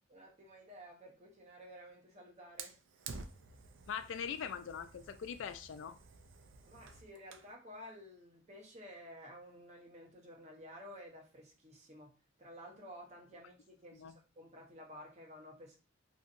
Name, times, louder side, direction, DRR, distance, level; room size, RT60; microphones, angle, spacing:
voice 1, 0.1-2.8 6.7-12.1 12.4-15.8, equal, 35° right, 0 dB, 0.8 m, -53 dB
Fire, 2.6-7.5, right 4 dB, 70° right, 0.4 m, -51 dB
voice 2, 3.9-6.0 13.9-14.1, left 7 dB, 75° left, 11 dB, 0.3 m, -42 dB
2.7 x 2.6 x 2.5 m, 0.33 s
head